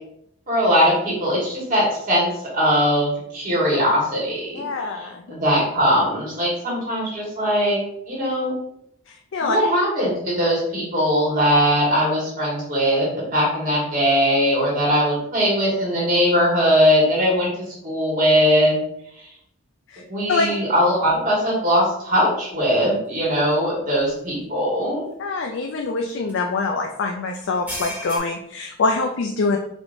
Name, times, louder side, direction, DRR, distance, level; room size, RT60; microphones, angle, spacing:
voice 1, 0.5-2.3 2.5-4.6 4.9-7.8 8.1-8.5 9.4-18.7 20.1-25.0, equal, 40° right, -5 dB, 1.6 m, -20 dB
voice 2, 4.5-5.2 9.1-9.6 19.9-20.0 20.3-20.5 25.2-29.6, left 3 dB, 60° left, 2 dB, 0.4 m, -24 dB
sound 1, 23.5-23.6 24.1-24.2 26.1-26.3 27.3-28.2, equal, 5° right, 1.3 m, -33 dB
4.7 x 3.0 x 2.6 m, 0.73 s
head